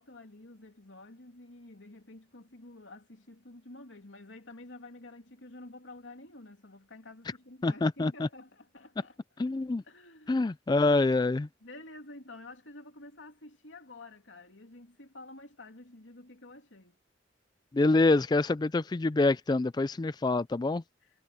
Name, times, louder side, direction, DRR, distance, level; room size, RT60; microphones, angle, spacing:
voice 1, 0.0-9.2 9.8-10.4 11.6-17.0 21.0-21.1, left 2 dB, 90° left, 3.0 m, -50 dB
voice 2, 7.6-8.3 9.4-9.8 10.3-11.5 17.7-20.8, left 2 dB, 20° left, 0.3 m, -26 dB
head